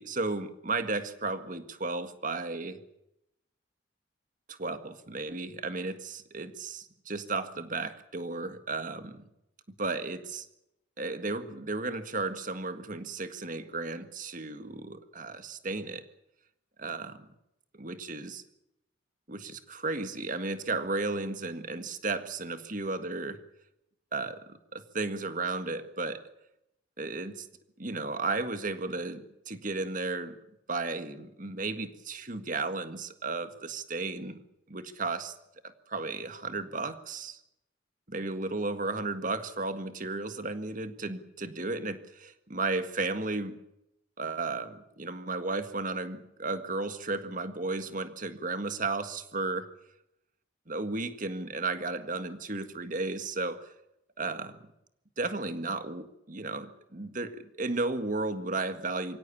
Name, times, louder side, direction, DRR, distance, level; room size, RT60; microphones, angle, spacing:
voice 1, 0.0-2.8 4.5-9.2 9.8-10.4 11.0-16.0 16.8-17.3 17.7-18.4 19.3-23.4 24.1-26.3 27.0-27.5 27.8-30.4 30.7-34.4 34.7-35.4 35.9-37.4 38.1-43.6 44.2-49.7 50.7-53.7 54.2-54.6 55.2-59.2, right 3 dB, 45° right, 9 dB, 1.7 m, -34 dB
23.5 x 17.0 x 8.6 m, 0.84 s
head